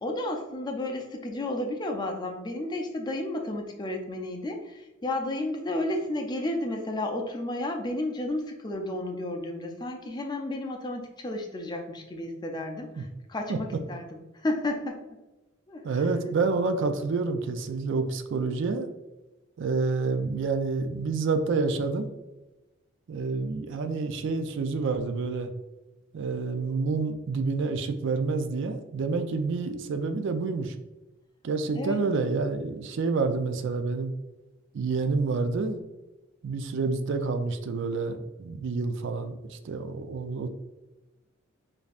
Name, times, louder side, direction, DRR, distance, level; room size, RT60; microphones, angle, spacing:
voice 1, 0.0-15.0 15.7-16.1 31.7-32.0, left 1 dB, 20° left, 2 dB, 0.4 m, -32 dB
voice 2, 15.8-18.9 19.6-22.1 23.1-25.5 26.1-30.7 31.4-34.1 34.7-35.8 36.4-40.5, right 4 dB, 60° right, 8 dB, 0.4 m, -28 dB
5.1 x 2.7 x 2.4 m, 1.1 s
head